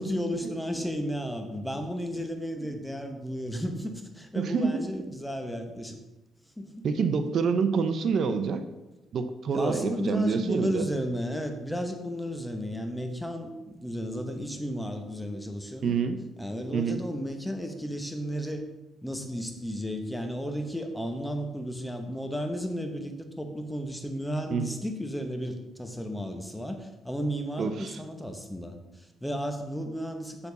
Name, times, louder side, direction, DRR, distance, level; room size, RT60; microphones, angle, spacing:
voice 1, 0.0-6.0 6.6-6.9 9.5-16.0 16.4-18.7 19.0-30.5, equal, 5° left, 5 dB, 1.0 m, -33 dB
voice 2, 4.4-4.8 6.8-8.6 9.1-10.9 15.8-16.2 16.7-17.0 24.5-24.8 27.6-28.0, right 5 dB, 60° right, 9 dB, 0.7 m, -27 dB
7.0 x 6.8 x 4.0 m, 1.0 s
cardioid pair, 90°, 0 cm